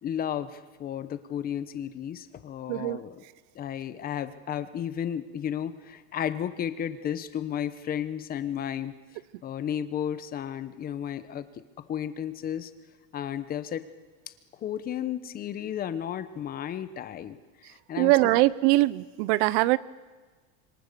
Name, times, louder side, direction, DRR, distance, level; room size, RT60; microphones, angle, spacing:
voice 1, 0.0-3.2 3.5-8.9 9.4-11.5 11.9-12.7 13.1-13.9 14.6-18.1, left 9 dB, 25° left, 13 dB, 1.0 m, -33 dB
voice 2, 2.7-3.0 18.0-19.8, right 19 dB, 65° right, 20 dB, 0.8 m, -22 dB
27.0 x 24.5 x 6.9 m, 1.4 s
cardioid pair, 165°, 35 cm